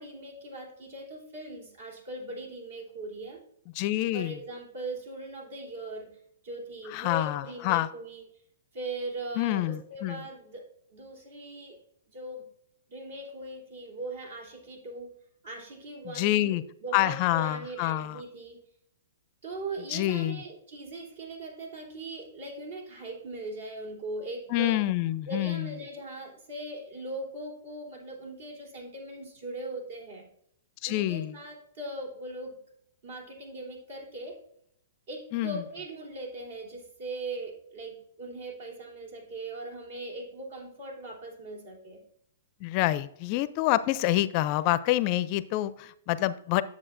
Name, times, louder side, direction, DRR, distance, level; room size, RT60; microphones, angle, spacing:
voice 1, 0.0-3.4 4.1-6.1 6.4-8.3 8.7-10.7 10.9-11.8 12.1-12.4 12.9-15.1 15.4-18.6 19.4-24.8 25.3-30.3 30.8-32.6 33.0-34.4 35.1-42.0, right 2 dB, 65° right, 0 dB, 3.2 m, -40 dB
voice 2, 3.8-4.4 6.9-7.9 9.4-10.2 16.0-16.6 16.9-18.2 19.9-20.4 24.5-25.7 30.8-31.3 35.3-35.6 42.6-46.6, left 15 dB, 40° left, 16 dB, 0.4 m, -27 dB
9.9 x 7.1 x 2.5 m, 0.70 s
hypercardioid pair, 135°, 0 cm